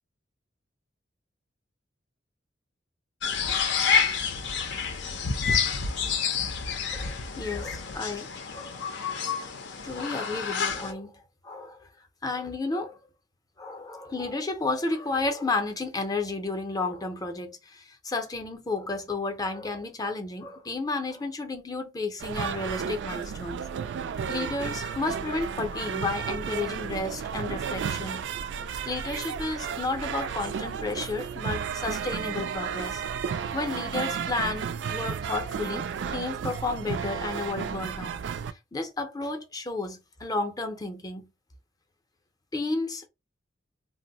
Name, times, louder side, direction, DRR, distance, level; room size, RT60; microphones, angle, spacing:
sound 1, 3.2-10.9, left 6 dB, 70° left, 0.5 m, -28 dB
voice 1, 6.9-8.8 9.8-11.9 12.2-13.0 13.6-23.6 24.3-28.3 28.9-33.0 33.5-38.2 38.7-41.3 42.5-43.1, left 3 dB, 20° left, 0.5 m, -32 dB
sound 2, 22.2-38.5, right 7 dB, 65° right, 0.3 m, -33 dB
2.5 x 2.0 x 3.9 m
head